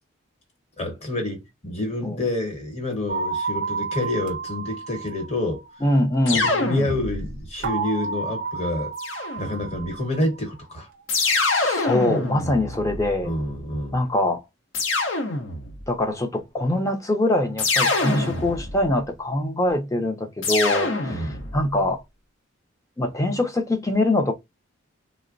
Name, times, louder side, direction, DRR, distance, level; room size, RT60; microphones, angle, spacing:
voice 1, 0.8-5.6 6.3-8.9 9.4-10.9 13.2-14.0 21.1-21.4, left 1 dB, 30° left, 1.0 m, -28 dB
sound 1, 3.1-6.0 7.6-10.4, right 4 dB, 45° right, 0.5 m, -31 dB
voice 2, 5.8-6.5 11.2-13.3 13.9-14.4 15.9-22.0 23.0-24.3, left 1 dB, 15° left, 0.5 m, -23 dB
sound 2, 6.3-7.5 9.0-9.8 11.1-13.4 14.7-15.9 17.6-18.9 20.4-21.6, left 3 dB, 65° left, 0.7 m, -25 dB
3.3 x 2.0 x 2.4 m
head